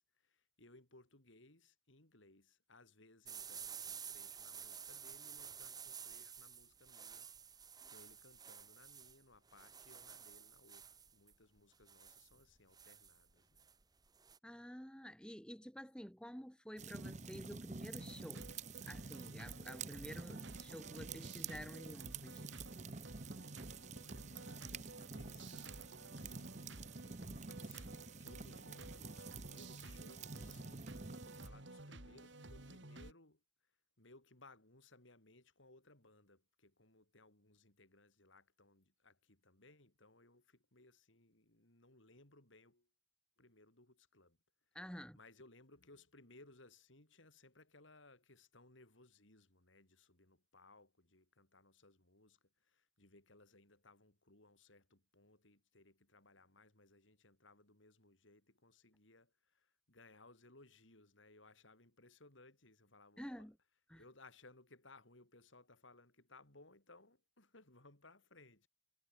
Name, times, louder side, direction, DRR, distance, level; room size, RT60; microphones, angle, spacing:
voice 1, 0.0-7.3 7.9-13.7 23.9-26.4 27.6-33.4 34.0-42.9 43.4-44.4 45.1-63.5 64.0-68.7, left 2 dB, 75° left, 4.8 m, -64 dB
sound 1, 3.2-14.4, right 7 dB, 20° right, 1.7 m, -52 dB
voice 2, 14.4-18.5 18.9-22.4 44.7-45.2 63.2-63.6 63.9-64.0, equal, 5° left, 2.2 m, -50 dB
sound 2, 16.8-31.5, right 4 dB, 35° right, 0.9 m, -49 dB
sound 3, 18.0-33.1, right 2 dB, 65° right, 2.9 m, -53 dB
head